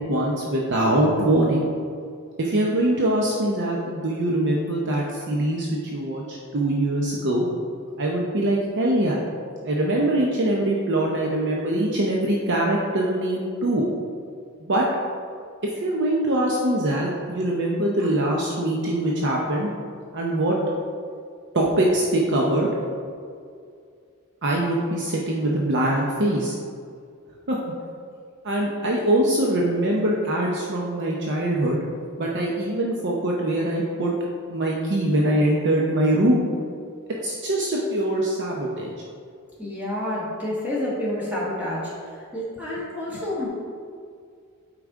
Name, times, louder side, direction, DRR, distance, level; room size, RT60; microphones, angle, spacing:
voice 1, 0.0-1.7 2.4-7.5 8.0-9.2 9.6-13.8 14.6-14.8 15.6-19.7 20.1-20.6 21.5-22.7 24.4-26.5 27.5-27.6 28.4-31.8 32.2-34.1 34.5-36.4 37.1-38.9, right 1 dB, 55° right, -2 dB, 0.7 m, -23 dB
voice 2, 39.6-41.8 42.3-43.5, left 1 dB, 10° right, -8 dB, 1.4 m, -28 dB
8.4 x 5.0 x 3.6 m, 2.3 s
head